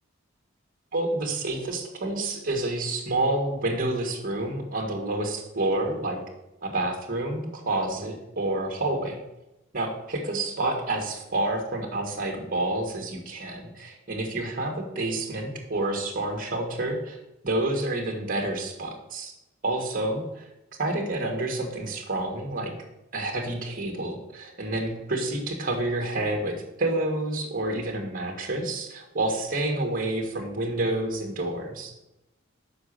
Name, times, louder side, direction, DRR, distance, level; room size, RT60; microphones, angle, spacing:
voice 1, 0.9-6.2 6.6-9.2 9.7-17.2 17.4-19.3 19.6-20.5 20.8-22.7 23.1-31.9, right 2 dB, 45° right, 2 dB, 1.7 m, -29 dB
6.9 x 5.1 x 6.5 m, 0.93 s
head